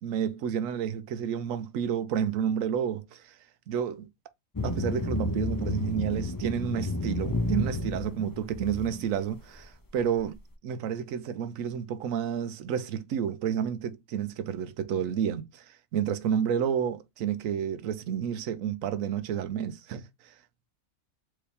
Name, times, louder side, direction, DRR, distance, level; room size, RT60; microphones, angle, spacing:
voice 1, 0.0-3.4 3.7-4.1 4.6-10.4 10.6-20.3, right 8 dB, 75° right, 1.0 m, -30 dB
sound 1, 4.5-9.1, left 2 dB, 25° left, 0.5 m, -31 dB
4.7 x 2.9 x 3.3 m
omnidirectional pair, 1.4 m